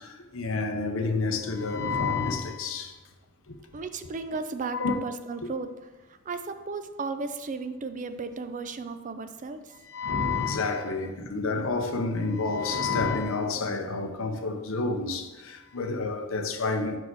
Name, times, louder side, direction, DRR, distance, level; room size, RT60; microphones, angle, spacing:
voice 1, 0.0-2.9 3.5-3.6 4.7-5.0 9.9-17.0, left 3 dB, 70° left, 0.7 m, -29 dB
voice 2, 3.7-5.7 6.1-9.7, right 4 dB, 40° right, 0.4 m, -35 dB
4.8 x 4.8 x 6.1 m
head